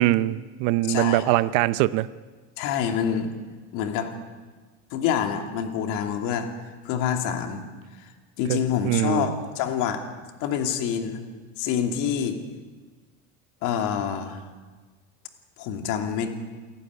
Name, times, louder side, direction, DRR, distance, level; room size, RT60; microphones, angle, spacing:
voice 1, 0.0-2.1 8.5-8.6 8.8-9.3, right 16 dB, 70° right, 16 dB, 0.8 m, -22 dB
voice 2, 0.8-1.2 2.6-3.3 3.7-4.1 4.9-6.5 6.8-7.6 8.0-8.1 8.4-10.0 10.4-11.2 11.6-12.4 13.6-14.4 15.6-16.3, left 8 dB, 70° left, 5 dB, 2.8 m, -26 dB
28.5 x 11.5 x 9.5 m, 1.4 s
cardioid pair, 170°, 32 cm